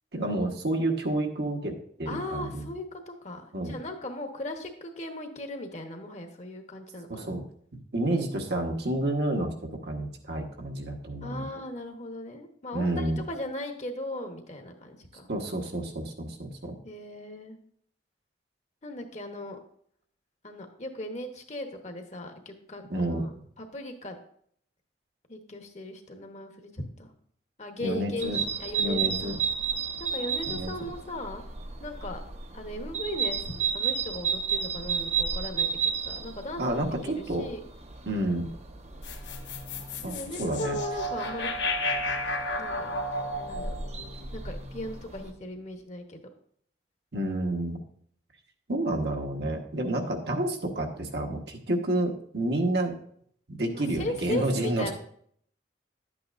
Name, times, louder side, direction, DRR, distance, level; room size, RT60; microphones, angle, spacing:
voice 1, 0.1-2.7 3.5-3.7 7.1-7.4 7.9-11.5 12.7-13.2 15.3-16.7 22.9-23.3 27.8-28.4 28.8-29.4 30.5-30.7 36.6-37.5 38.1-38.5 40.0-40.8 47.1-47.8 48.7-53.0 53.5-54.9, right 1 dB, 65° right, 1 dB, 1.2 m, -29 dB
voice 2, 2.1-7.3 11.2-15.3 16.8-17.6 18.8-19.6 20.4-23.3 23.6-24.2 25.3-27.1 27.6-29.4 30.0-31.4 31.8-32.2 32.5-36.8 37.1-37.6 40.0-41.5 42.6-42.9 43.5-43.7 44.3-46.2 53.7-54.9, left 1 dB, 40° left, 5 dB, 1.1 m, -37 dB
sound 1, 28.2-45.3, right 6 dB, 35° right, 0.7 m, -33 dB
sound 2, 39.0-45.3, left 1 dB, 85° left, 1.0 m, -33 dB
11.0 x 8.6 x 2.5 m, 0.63 s
head